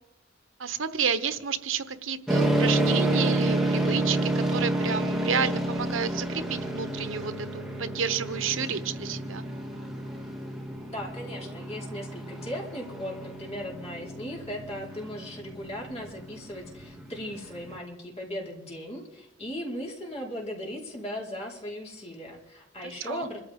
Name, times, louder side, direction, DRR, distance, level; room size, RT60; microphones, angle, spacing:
voice 1, 0.6-9.4 22.8-23.3, right 6 dB, 80° right, 11 dB, 1.0 m, -30 dB
sound 1, 2.3-17.8, right 1 dB, ahead, 2.5 m, -30 dB
voice 2, 10.8-23.4, equal, 30° left, -3 dB, 4.6 m, -37 dB
26.5 x 14.0 x 3.7 m, 0.89 s
head